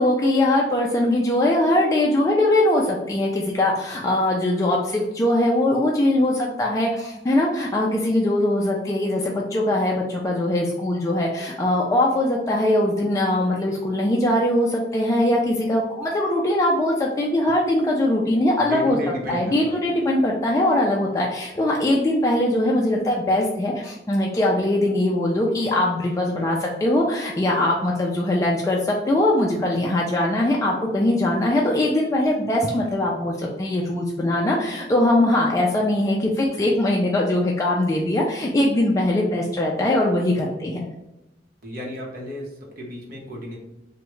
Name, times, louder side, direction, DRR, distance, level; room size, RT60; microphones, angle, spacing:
voice 1, 0.0-19.0 19.3-40.8, left 1 dB, 20° left, -2 dB, 0.3 m, -21 dB
voice 2, 18.6-20.2 41.6-43.6, left 1 dB, 55° right, -1 dB, 0.8 m, -33 dB
3.5 x 2.1 x 3.0 m, 0.94 s
head